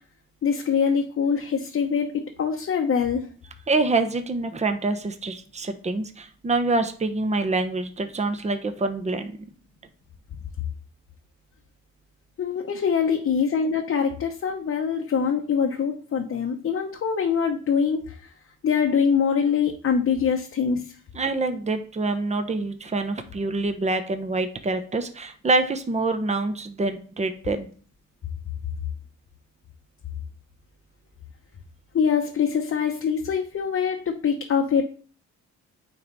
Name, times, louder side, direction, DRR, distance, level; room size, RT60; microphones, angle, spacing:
voice 1, 0.4-3.3 12.4-18.3 18.6-20.9 31.9-34.8, left 6 dB, 45° left, 2 dB, 0.9 m, -24 dB
voice 2, 3.7-9.4 21.1-27.7, right 3 dB, 25° right, 8 dB, 0.9 m, -26 dB
9.3 x 3.2 x 4.1 m, 0.42 s
cardioid pair, 90°, 30 cm